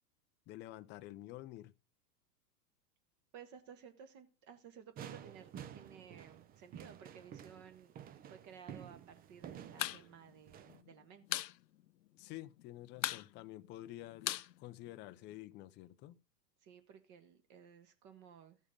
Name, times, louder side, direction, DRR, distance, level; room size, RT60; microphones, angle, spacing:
voice 1, 0.5-1.7 12.2-16.2, left 15 dB, 25° left, 0.5 m, -49 dB
voice 2, 3.3-7.9 8.3-11.4 16.6-18.6, right 7 dB, 35° right, 1.5 m, -56 dB
sound 1, 5.0-10.8, right 9 dB, 20° right, 0.6 m, -51 dB
sound 2, 9.7-10.0 10.3-10.4 10.7-11.5 11.9-12.0 12.2-12.6 13.0-15.3, left 14 dB, 85° left, 0.6 m, -39 dB
13.5 x 7.2 x 5.1 m
hypercardioid pair, 120°, 49 cm